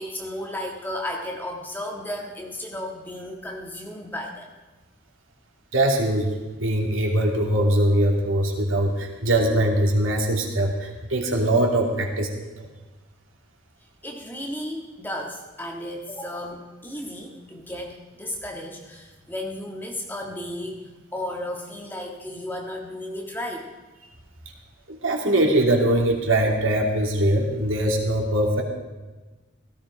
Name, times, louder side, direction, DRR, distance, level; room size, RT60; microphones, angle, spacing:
voice 1, 0.0-4.5 14.0-23.7, left 1 dB, 10° left, 0 dB, 1.7 m, -34 dB
voice 2, 5.7-12.3 12.6-12.7 24.9-28.6, right 1 dB, 85° right, 1 dB, 2.7 m, -22 dB
17.0 x 14.0 x 5.0 m, 1.2 s
head